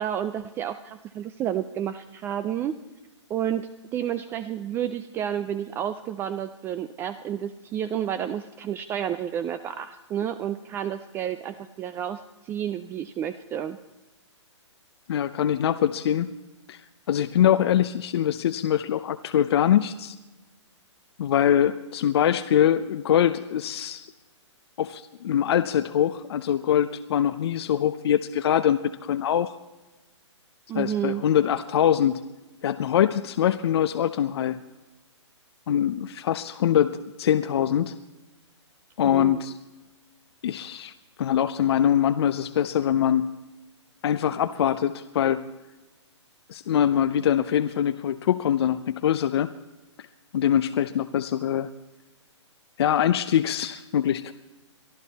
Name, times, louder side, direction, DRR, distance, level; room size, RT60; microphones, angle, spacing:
voice 1, 0.0-2.7 3.3-13.8 30.7-31.2 39.0-39.4, right 10 dB, 15° right, 12 dB, 0.4 m, -30 dB
voice 2, 15.1-16.3 16.7-16.8 17.1-20.2 21.2-24.1 24.8-29.5 30.7-32.2 32.6-34.6 35.7-37.9 39.0-39.5 40.4-40.9 41.2-43.3 44.0-45.4 46.5-49.5 50.3-51.7 52.8-54.3, left 10 dB, 55° left, 12 dB, 0.6 m, -23 dB
23.0 x 13.0 x 4.2 m, 1.1 s
hypercardioid pair, 140°, 16 cm